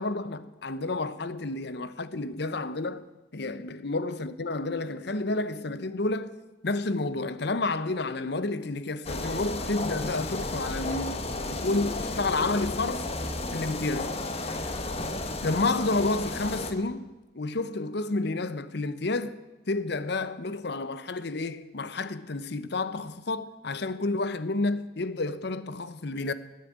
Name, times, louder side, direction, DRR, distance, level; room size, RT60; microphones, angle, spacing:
voice 1, 0.0-3.1 3.3-6.4 6.6-11.2 11.5-13.1 13.5-14.6 15.4-17.1 17.3-19.4 19.7-26.3, left 2 dB, 60° left, 0.9 m, -30 dB
sound 1, 9.0-16.7, left 2 dB, 35° left, 1.4 m, -33 dB
16.0 x 9.7 x 9.3 m
head